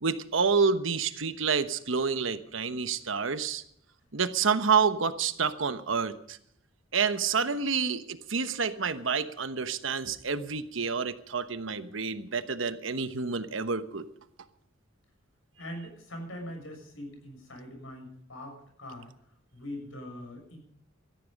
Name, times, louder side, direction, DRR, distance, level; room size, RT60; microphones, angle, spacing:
voice 1, 0.0-3.6 4.1-6.4 6.9-14.1, right 5 dB, 70° right, 11 dB, 1.1 m, -28 dB
voice 2, 15.6-19.1 19.5-20.6, left 1 dB, 80° left, 3 dB, 6.7 m, -42 dB
18.0 x 13.5 x 5.3 m, 0.69 s
head